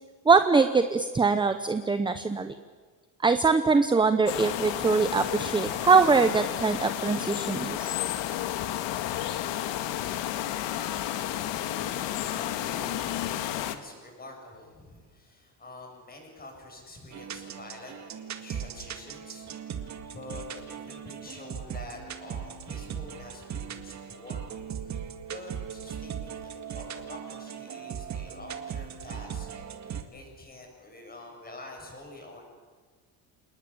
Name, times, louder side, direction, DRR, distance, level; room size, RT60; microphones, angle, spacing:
voice 1, 0.2-2.6 3.2-8.0, right 4 dB, 10° right, 10 dB, 0.8 m, -23 dB
sound 1, 4.3-13.8, left 12 dB, 70° left, 1.9 m, -31 dB
voice 2, 11.4-24.4 24.8-32.5, left 2 dB, 20° left, 1 dB, 7.6 m, -47 dB
sound 2, 17.1-30.0, right 8 dB, 40° right, 2.0 m, -38 dB
28.0 x 20.0 x 8.7 m, 1.4 s
cardioid pair, 140°, 44 cm